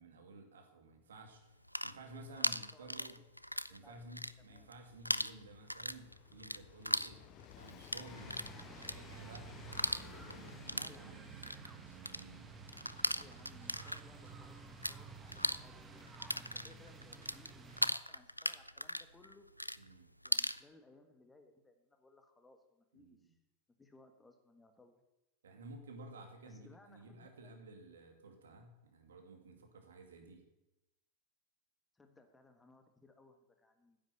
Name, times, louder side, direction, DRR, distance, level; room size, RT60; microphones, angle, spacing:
voice 1, 0.0-1.4 1.8-3.2 3.7-7.2 7.5-11.2 12.1-12.5 19.8-20.1 22.9-23.3 25.4-30.4, right 2 dB, 65° right, 4 dB, 2.3 m, -54 dB
sound 1, 1.5-3.8 4.0-4.8 5.0-15.0 15.2-20.6, equal, 90° left, 0.4 m, -38 dB
Train, 1.6-18.2 19.2-19.3, left 10 dB, 35° left, 0.8 m, -59 dB
voice 2, 2.0-3.3 3.7-3.9 4.4-4.7 10.7-11.4 13.1-19.5 20.2-23.4 23.8-25.0 26.4-27.5 31.9-34.0, left 3 dB, 10° left, 7 dB, 1.5 m, -63 dB
sound 2, 8.1-18.0, right 4 dB, 15° right, 1.5 m, -52 dB
10.0 x 8.6 x 8.7 m, 0.95 s
figure-of-eight pair, 90°, 0 cm